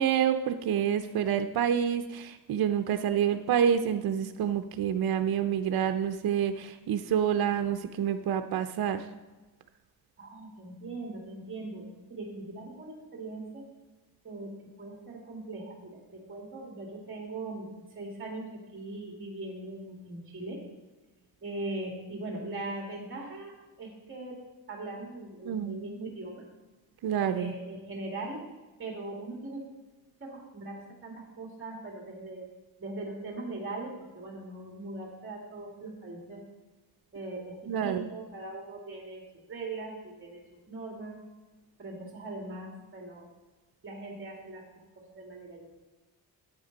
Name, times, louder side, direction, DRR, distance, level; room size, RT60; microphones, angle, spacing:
voice 1, 0.0-9.0 25.5-25.8 27.0-27.5 37.7-38.0, right 9 dB, 75° right, 8 dB, 0.6 m, -28 dB
voice 2, 10.2-11.8 12.1-13.6 14.2-14.5 14.8-20.6 21.4-23.5 23.8-24.4 24.7-26.4 27.3-28.4 28.8-29.6 30.2-32.4 32.8-36.4 37.1-39.2 39.5-40.4 40.7-41.2 41.8-43.3 43.8-44.8 45.1-45.9, right 2 dB, 35° right, -1 dB, 2.2 m, -40 dB
10.5 x 8.1 x 4.0 m, 1.2 s
wide cardioid pair, 120°, 37 cm